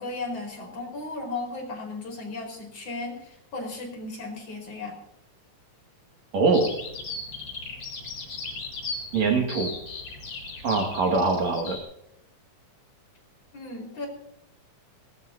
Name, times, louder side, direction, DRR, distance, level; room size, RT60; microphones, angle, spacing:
voice 1, 0.0-5.0 13.5-14.1, left 3 dB, 50° left, 1 dB, 5.7 m, -35 dB
voice 2, 6.3-6.7 9.1-9.7 10.6-11.8, right 4 dB, 60° right, 2 dB, 3.4 m, -23 dB
Bird vocalization bird call bird song, 6.5-11.8, left 3 dB, 80° left, 6.1 m, -37 dB
20.5 x 19.0 x 2.8 m, 0.79 s
omnidirectional pair, 3.5 m